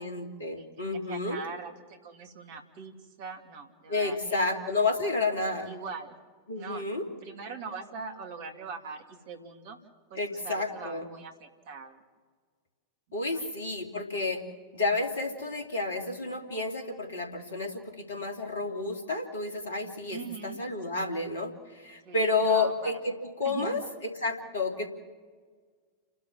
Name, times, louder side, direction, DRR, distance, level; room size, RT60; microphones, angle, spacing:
voice 1, 0.0-1.4 3.9-5.8 6.5-7.0 10.1-11.1 13.1-14.4 14.7-23.1 23.4-23.8 24.1-24.9, left 3 dB, 65° left, 4 dB, 3.0 m, -30 dB
voice 2, 1.0-4.5 5.7-6.2 6.5-9.8 10.1-12.0 13.2-13.5 20.1-20.6 22.0-22.9 23.4-23.7, right 5 dB, 50° right, 4 dB, 2.8 m, -42 dB
30.0 x 12.5 x 7.4 m, 1.5 s
figure-of-eight pair, 90°, 0 cm